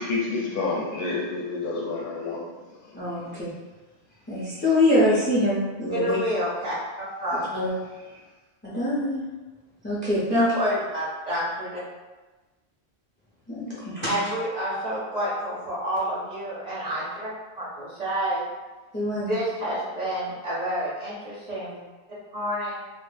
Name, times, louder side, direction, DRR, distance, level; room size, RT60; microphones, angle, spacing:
voice 1, 0.0-2.4, left 3 dB, 60° left, -5 dB, 0.7 m, -28 dB
voice 2, 2.9-3.5 4.3-6.2 7.5-7.7 8.6-9.2 9.8-10.5 13.5-14.1 18.9-19.3, left 1 dB, 15° left, -8 dB, 0.4 m, -24 dB
voice 3, 5.9-7.4 10.3-11.8 14.1-17.3 17.6-18.4 19.2-21.8 22.3-22.7, equal, 50° right, -8 dB, 0.6 m, -28 dB
2.1 x 2.1 x 3.2 m, 1.2 s
omnidirectional pair, 1.1 m